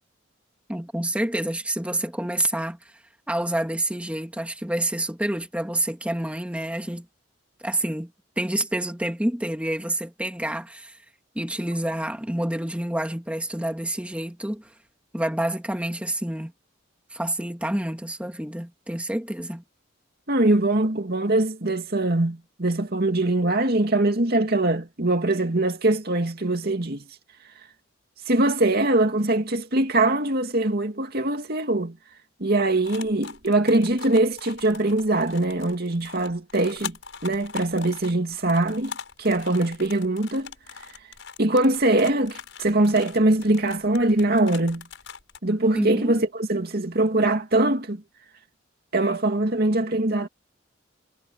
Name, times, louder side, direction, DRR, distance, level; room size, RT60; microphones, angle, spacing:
voice 1, 0.7-2.9 3.3-7.1 7.6-8.1 8.4-11.0 11.4-14.7 15.1-16.5 17.1-19.6 45.8-46.2, right 1 dB, 5° right, 2.0 m, -28 dB
voice 2, 20.3-27.0 28.3-32.0 32.4-37.0 37.2-40.5 41.4-44.9 45.4-48.0 48.9-50.3, right 2 dB, 50° right, 2.5 m, -22 dB
sound 1, 32.8-45.4, left 6 dB, 70° left, 6.4 m, -41 dB
head